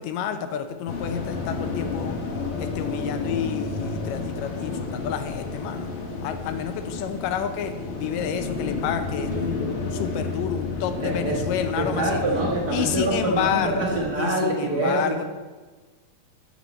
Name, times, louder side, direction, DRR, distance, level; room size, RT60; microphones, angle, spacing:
voice 1, 0.0-2.2 2.6-5.9 6.2-7.7 8.0-12.2 12.7-15.3, left 8 dB, 85° left, 8 dB, 2.4 m, -29 dB
sound 1, 0.9-14.1, left 4 dB, 55° left, 1.7 m, -31 dB
voice 2, 11.0-11.4 11.7-15.2, right 2 dB, 75° right, -3 dB, 0.9 m, -25 dB
14.5 x 7.3 x 4.3 m, 1.3 s
omnidirectional pair, 3.8 m